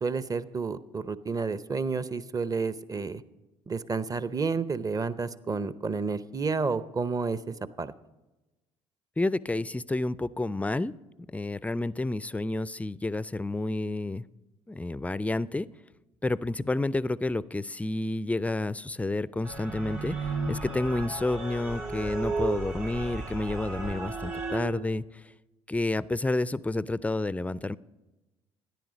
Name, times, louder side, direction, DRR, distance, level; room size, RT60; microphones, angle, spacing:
voice 1, 0.0-3.2 3.7-7.9, right 4 dB, 25° right, 15 dB, 0.7 m, -30 dB
voice 2, 9.2-10.9 11.3-14.2 14.7-15.7 16.2-25.2 25.7-27.8, left 2 dB, 10° left, 19 dB, 0.4 m, -30 dB
sound 1, 19.4-24.6, right 3 dB, 85° right, 4.5 m, -34 dB
13.5 x 10.0 x 5.1 m, 1.1 s
hypercardioid pair, 65°, 14 cm